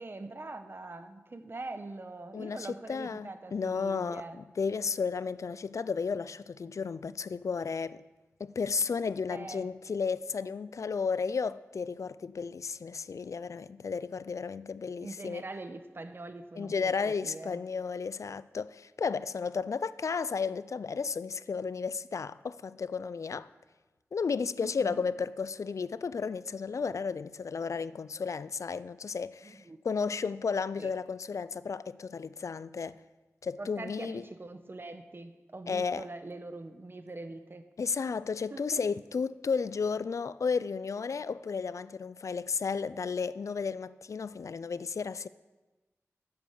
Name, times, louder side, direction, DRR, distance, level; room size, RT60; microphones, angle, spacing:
voice 1, 0.0-4.4 9.3-9.7 15.0-16.9 17.2-17.6 24.6-25.0 29.4-29.8 30.8-30.9 33.6-37.6 38.1-38.2 38.5-38.8, right 2 dB, 45° right, 1.0 m, -43 dB
voice 2, 2.3-8.0 8.4-15.4 16.6-23.5 24.1-33.0 33.4-34.2 35.7-36.1 37.8-45.3, left 5 dB, 70° left, 0.4 m, -33 dB
10.0 x 8.0 x 6.6 m
wide cardioid pair, 65°, 5 cm